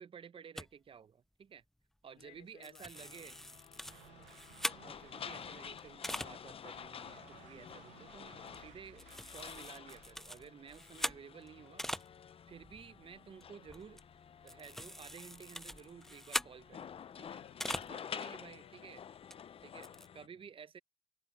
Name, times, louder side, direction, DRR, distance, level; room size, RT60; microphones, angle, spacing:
voice 1, 0.0-1.6 2.0-3.4 4.8-9.1 9.3-11.8 12.5-14.0 14.4-17.4 17.9-19.0 19.6-20.8, right 7 dB, 45° right, 0.8 m, -53 dB
sound 1, 0.6-0.7 2.2-2.4 2.6-5.2 5.8-6.3 6.9-7.0 7.3-7.6 8.4-8.7 9.0-12.1 12.4-18.0 18.3-18.4 19.3-19.4 19.6-20.1, equal, 5° left, 0.4 m, -43 dB
voice 2, 2.1-4.1 4.5-4.9 8.2-8.5 11.6-12.0 17.3-20.5, left 17 dB, 90° left, 3.0 m, -65 dB
sound 2, 2.9-20.3, left 8 dB, 50° left, 0.7 m, -50 dB
sound 3, 3.9-10.2, right 16 dB, 85° right, 0.6 m, -60 dB
supercardioid pair, 65°, 12 cm